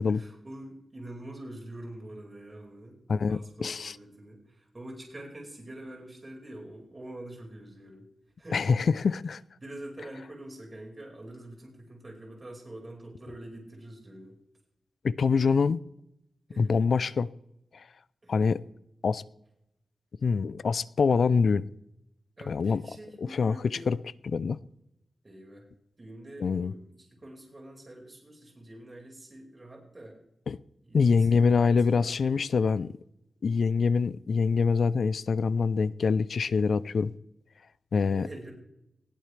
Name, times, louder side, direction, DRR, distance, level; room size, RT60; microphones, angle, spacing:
voice 1, 0.1-3.0 3.3-8.0 8.4-8.7 9.6-14.3 16.5-17.1 18.2-18.3 22.4-23.9 25.2-25.7 26.0-26.8 27.1-30.2 30.8-32.4 38.0-38.5, right 1 dB, 30° right, 5.2 m, -45 dB
voice 2, 3.1-4.0 8.5-9.4 15.0-15.8 16.6-17.3 17.7-17.8 18.3-18.6 19.0-19.2 20.2-21.6 22.5-22.8 23.2-24.0 24.2-24.6 26.4-26.7 30.5-30.6 30.9-32.9 33.4-37.1 37.9-38.3, left 5 dB, 70° left, 0.5 m, -25 dB
20.0 x 15.5 x 3.4 m
wide cardioid pair, 110°, 0 cm